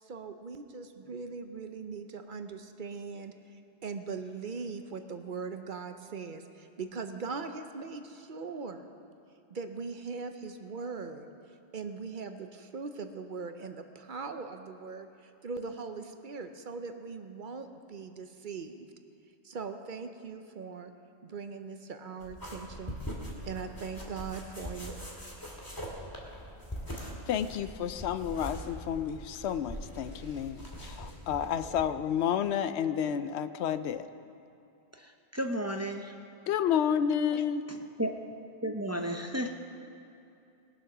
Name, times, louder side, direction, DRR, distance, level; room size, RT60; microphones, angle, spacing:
voice 1, 0.0-8.9 9.5-11.3 11.7-18.9 19.4-20.9 21.2-23.0 23.4-24.9, right 4 dB, 55° right, 7 dB, 0.8 m, -40 dB
sound 1, 22.2-31.8, equal, 20° left, 2.0 m, -42 dB
voice 2, 27.3-34.1 36.5-37.7, left 8 dB, 90° left, 12 dB, 0.9 m, -30 dB
voice 3, 35.0-36.1 38.0-38.1 38.6-39.5, equal, 20° right, 4 dB, 0.5 m, -33 dB
20.0 x 7.2 x 6.0 m, 2.7 s
omnidirectional pair, 1.1 m